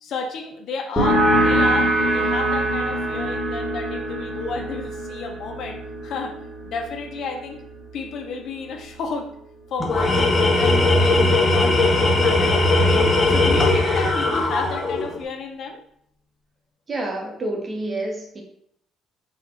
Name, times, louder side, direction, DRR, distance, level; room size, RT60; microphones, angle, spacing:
voice 1, 0.0-6.3 6.6-7.6 7.9-9.3 9.7-10.2 10.5-15.8, left 4 dB, 55° left, 4 dB, 0.6 m, -32 dB
sound 1, 1.0-8.2, right 1 dB, ahead, 1.2 m, -23 dB
Tools, 9.8-15.2, left 2 dB, 20° left, 0.7 m, -18 dB
voice 2, 16.9-18.4, right 2 dB, 25° right, 1 dB, 0.9 m, -28 dB
4.2 x 2.4 x 4.2 m, 0.70 s
cardioid pair, 150°, 0 cm